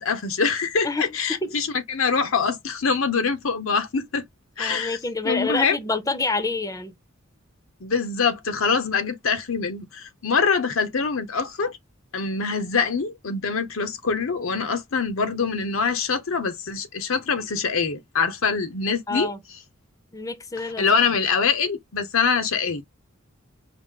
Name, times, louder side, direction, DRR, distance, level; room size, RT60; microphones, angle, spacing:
voice 1, 0.0-4.2 4.6-5.0 5.2-5.8 7.8-11.8 12.1-19.3 20.6-22.8, left 5 dB, 75° left, 0.8 m, -24 dB
voice 2, 0.8-1.6 4.6-6.9 19.1-19.4 20.1-21.0, left 3 dB, 15° left, 0.6 m, -28 dB
4.9 x 2.1 x 3.6 m
head